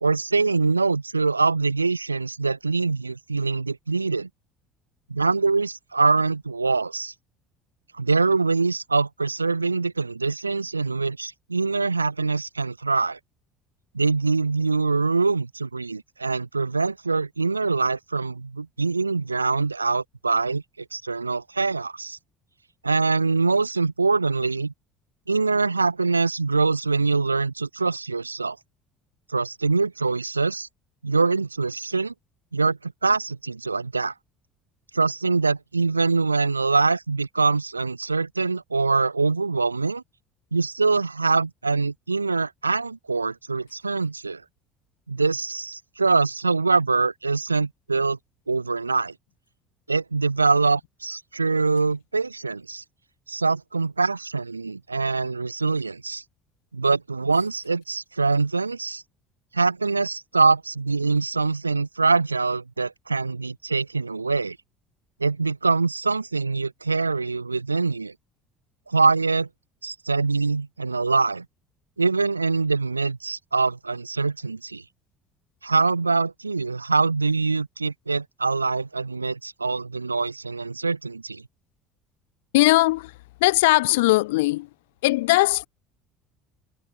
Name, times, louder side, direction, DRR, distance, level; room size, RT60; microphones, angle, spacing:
voice 1, 0.0-4.3 5.1-7.1 7.9-13.2 13.9-22.2 22.8-24.7 25.3-28.6 29.3-30.7 31.0-32.1 32.5-34.1 34.9-40.0 40.5-44.4 45.1-48.2 48.5-49.1 49.9-52.8 53.3-56.2 56.7-59.0 59.5-64.6 65.2-68.1 68.9-69.5 69.8-71.5 72.0-74.8 75.6-81.4, right 4 dB, 85° right, 2.2 m, -24 dB
voice 2, 82.5-83.1 83.4-84.7 85.0-85.7, left 20 dB, 65° left, 2.1 m, -19 dB
figure-of-eight pair, 60°, 0 cm